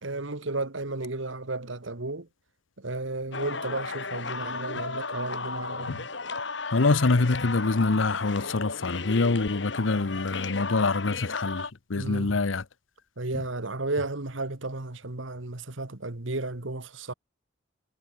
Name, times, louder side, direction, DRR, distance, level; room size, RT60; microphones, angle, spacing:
voice 1, 0.0-2.3 2.8-6.1 11.9-12.3 13.2-17.1, right 2 dB, 80° right, 1.8 m, -33 dB
sound 1, 3.3-11.7, left 4 dB, 65° left, 3.1 m, -35 dB
voice 2, 6.7-12.6, left 3 dB, 80° left, 0.9 m, -25 dB
head